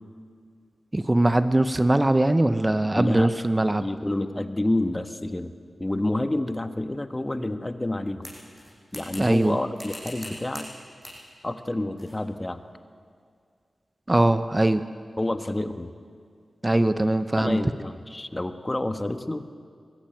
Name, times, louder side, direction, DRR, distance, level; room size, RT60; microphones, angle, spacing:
voice 1, 0.9-3.8 9.2-9.6 14.1-14.8 16.6-17.6, right 1 dB, 25° right, 11 dB, 0.8 m, -21 dB
voice 2, 2.9-3.3 3.8-5.5 5.8-8.3 8.9-10.7 11.4-12.6 15.2-15.9 17.4-19.5, left 1 dB, 25° left, 8 dB, 1.3 m, -28 dB
sound 1, 8.2-9.5 9.8-10.7 11.0-11.2 12.0-12.2, equal, 5° left, 7.2 m, -41 dB
21.5 x 15.0 x 9.2 m, 2.2 s
cardioid pair, 50°, 0 cm